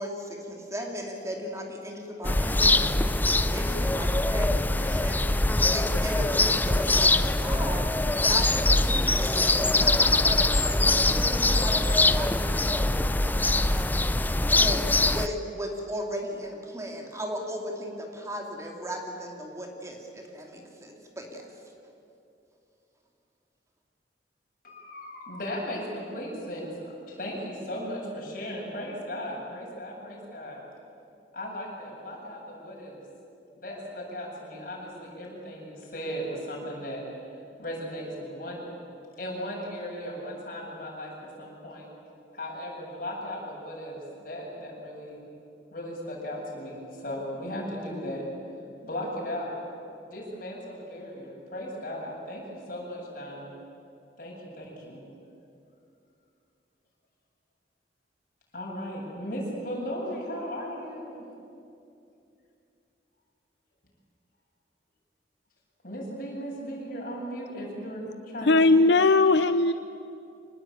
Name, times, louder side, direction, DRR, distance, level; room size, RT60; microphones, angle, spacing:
voice 1, 0.0-21.5, equal, 15° right, 1 dB, 2.8 m, -37 dB
sound 1, 2.2-15.3, left 2 dB, 10° left, 0.5 m, -23 dB
voice 2, 24.6-26.7 27.1-30.6 31.3-33.0 33.6-37.0 37.6-38.6 39.2-41.9 42.3-45.2 45.7-48.3 48.8-49.5 50.1-53.5 54.2-55.0 58.5-61.2 65.8-68.8, equal, 50° left, -2 dB, 7.7 m, -36 dB
voice 3, 68.4-69.7, left 3 dB, 80° left, 11 dB, 0.6 m, -19 dB
25.5 x 20.0 x 9.0 m, 2.6 s
head